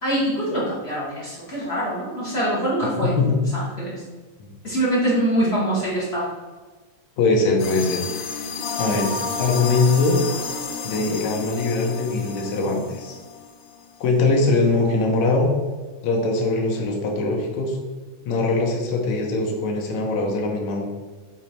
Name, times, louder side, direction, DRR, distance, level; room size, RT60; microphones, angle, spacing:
voice 1, 0.0-3.1 3.5-4.0 4.6-6.3, right 1 dB, 40° left, -6 dB, 0.8 m, -24 dB
voice 2, 3.0-3.4 4.4-4.5 7.2-8.0 8.8-10.2 10.8-13.2 14.0-15.5 16.0-17.8 18.3-20.9, left 3 dB, 70° left, 0 dB, 2.2 m, -22 dB
sound 1, 7.6-13.9, left 5 dB, 85° left, 2.3 m, -31 dB
6.3 x 3.8 x 4.2 m, 1.3 s
omnidirectional pair, 3.7 m